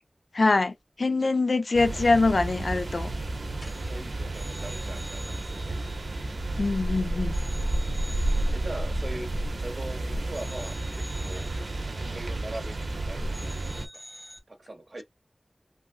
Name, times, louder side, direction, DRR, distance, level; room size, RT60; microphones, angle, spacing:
voice 1, 0.3-3.1 6.6-7.4, left 3 dB, 75° left, 0.3 m, -24 dB
voice 2, 1.0-1.4 1.9-2.0 3.6-5.9 8.2-10.8 11.2-11.5 12.0-12.8 13.0-13.5 14.5-15.0, right 1 dB, 60° right, 0.9 m, -41 dB
sound 1, 1.7-13.9, right 1 dB, 90° right, 0.7 m, -31 dB
sound 2, 2.2-2.6 2.9-3.1 3.5-6.9 7.3-9.9 10.3-13.0 13.3-14.4, equal, 40° left, 2.1 m, -48 dB
3.5 x 2.4 x 2.3 m
wide cardioid pair, 65°, 0 cm